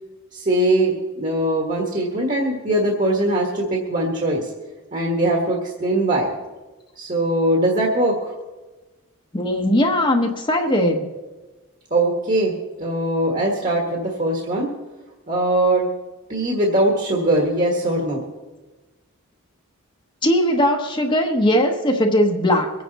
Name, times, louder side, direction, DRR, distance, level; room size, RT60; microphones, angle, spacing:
voice 1, 0.3-4.5 4.9-6.3 7.0-8.3 11.9-14.7 15.3-15.8 16.3-18.2, right 1 dB, 35° right, -1 dB, 1.7 m, -21 dB
voice 2, 9.3-11.1 20.2-22.7, left 1 dB, 20° left, 3 dB, 1.0 m, -19 dB
23.5 x 9.6 x 4.1 m, 1.2 s
head